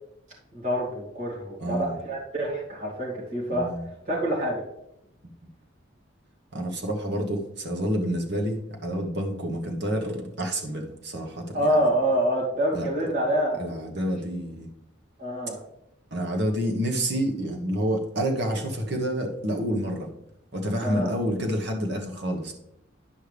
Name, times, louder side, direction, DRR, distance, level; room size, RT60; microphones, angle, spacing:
voice 1, 0.5-3.7 4.1-4.6 11.5-13.6 15.2-15.6 20.8-21.1, right 1 dB, 40° right, -5 dB, 2.6 m, -26 dB
voice 2, 1.6-2.0 3.5-3.8 6.5-11.9 12.7-12.9 13.6-14.7 16.1-20.1 20.5-22.5, equal, 60° right, 2 dB, 1.3 m, -28 dB
10.0 x 5.6 x 3.4 m, 0.82 s
head